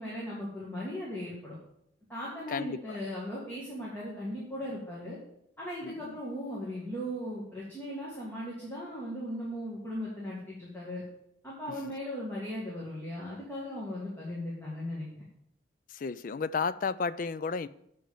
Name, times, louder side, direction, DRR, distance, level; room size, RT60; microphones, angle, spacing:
voice 1, 0.0-1.6 2.1-5.2 5.6-11.0 11.4-15.1, equal, 10° left, 1.9 m, -38 dB
voice 2, 2.5-3.0 5.8-6.2 11.7-11.9 15.9-17.7, left 5 dB, 45° left, 0.3 m, -33 dB
7.6 x 5.2 x 6.9 m
head